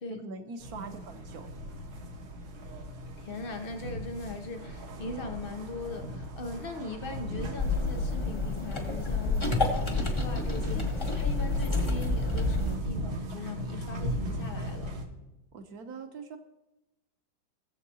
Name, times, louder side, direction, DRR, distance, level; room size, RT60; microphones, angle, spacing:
voice 1, 0.1-1.5 15.5-16.4, right 4 dB, 60° right, 7 dB, 1.2 m, -42 dB
sound 1, 0.6-15.1, equal, 80° right, 2.1 m, -38 dB
voice 2, 3.2-14.9, left 3 dB, 85° left, 4 dB, 0.4 m, -40 dB
sound 2, 7.6-12.8, left 2 dB, 25° left, 0.6 m, -29 dB
19.5 x 7.1 x 2.8 m, 0.99 s
omnidirectional pair, 2.2 m